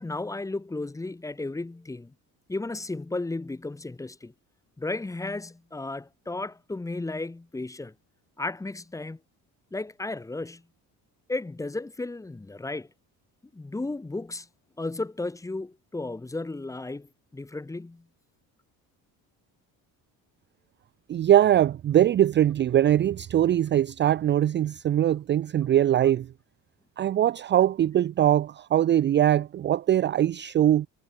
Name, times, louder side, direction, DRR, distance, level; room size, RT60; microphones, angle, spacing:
voice 1, 0.0-2.1 2.5-4.3 4.8-7.9 8.4-9.2 9.7-10.6 11.3-12.9 13.5-14.5 14.8-18.0, left 2 dB, 10° left, 2.0 m, -34 dB
voice 2, 21.1-26.3 27.0-30.9, right 11 dB, 30° right, 0.5 m, -22 dB
cardioid pair, 180°, 37 cm